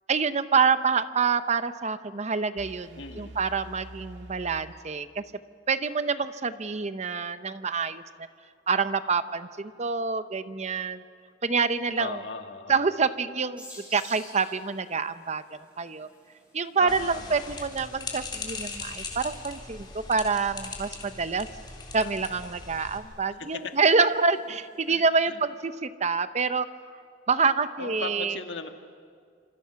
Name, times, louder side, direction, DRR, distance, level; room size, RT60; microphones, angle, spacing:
voice 1, 0.1-5.2 5.7-8.0 8.7-11.0 11.4-12.2 12.7-13.6 13.9-15.4 15.8-16.1 16.5-21.5 21.9-26.7 27.3-28.4, right 5 dB, 40° right, 12 dB, 0.8 m, -27 dB
sound 1, 2.6-5.5, right 1 dB, 80° right, 1.9 m, -47 dB
voice 2, 3.0-3.4 12.0-12.9 16.8-17.7 23.4-23.7 24.5-24.6 24.9-25.4 27.8-28.7, left 3 dB, 70° left, 5 dB, 1.7 m, -38 dB
sound 2, 13.6-24.9, left 1 dB, 5° right, 7.9 m, -55 dB
sound 3, 16.9-23.0, left 4 dB, 25° left, 3.7 m, -39 dB
27.5 x 27.0 x 5.9 m, 2.1 s
head